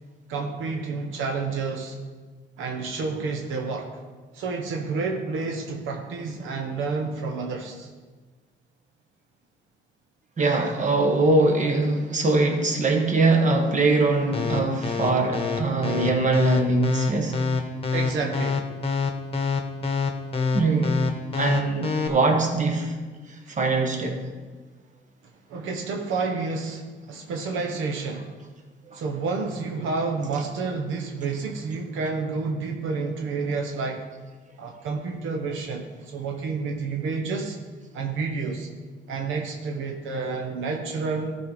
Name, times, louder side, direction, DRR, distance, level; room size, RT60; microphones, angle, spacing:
voice 1, 0.3-2.0 2.6-3.9 4.3-7.9 17.9-18.6 23.5-23.6 25.5-28.3 28.9-34.0 34.6-37.6 37.9-38.7 39.1-41.4, right 4 dB, 85° right, 1.0 m, -29 dB
voice 2, 10.4-17.4 20.5-21.0 21.3-22.9 23.5-24.3 28.9-29.0, right 3 dB, 40° right, 1.5 m, -22 dB
sound 1, 14.3-22.1, left 4 dB, 30° left, 1.1 m, -25 dB
13.5 x 4.5 x 5.0 m
cardioid pair, 90°, 20 cm